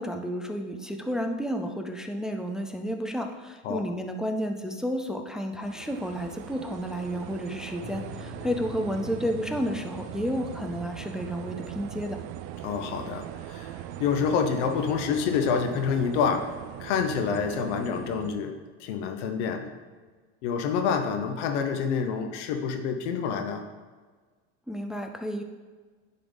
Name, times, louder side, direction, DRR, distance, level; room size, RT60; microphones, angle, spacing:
voice 1, 0.0-12.2 24.7-25.4, equal, ahead, 5 dB, 0.4 m, -31 dB
sound 1, 5.6-18.3, right 12 dB, 60° right, 0.5 m, -40 dB
sound 2, 7.8-15.7, left 4 dB, 35° left, 1.8 m, -49 dB
voice 2, 12.6-16.5 16.8-19.7 20.4-23.6, left 6 dB, 80° left, 6 dB, 1.0 m, -27 dB
10.5 x 3.9 x 3.4 m, 1.4 s
supercardioid pair, 115°, 35 cm